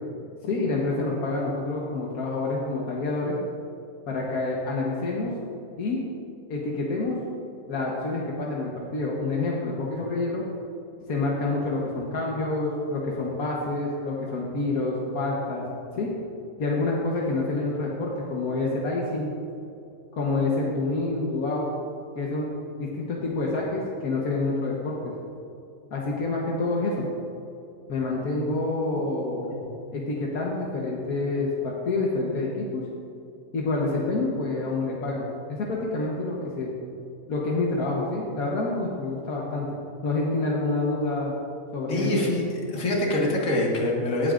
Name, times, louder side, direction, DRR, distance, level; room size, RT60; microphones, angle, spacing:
voice 1, 0.4-3.4 4.1-5.3 5.8-6.0 6.5-7.2 7.7-10.4 11.1-15.6 16.0-16.1 16.6-19.3 20.1-21.7 22.1-22.5 22.8-25.2 25.9-27.1 27.9-29.6 29.9-32.8 33.5-36.7 37.3-39.8 40.0-41.3 41.7-42.3, left 2 dB, 85° left, -3 dB, 1.6 m, -27 dB
voice 2, 41.9-42.4 42.7-44.3, left 1 dB, 70° left, -2 dB, 2.1 m, -25 dB
17.0 x 8.8 x 2.5 m, 2.6 s
omnidirectional pair, 1.5 m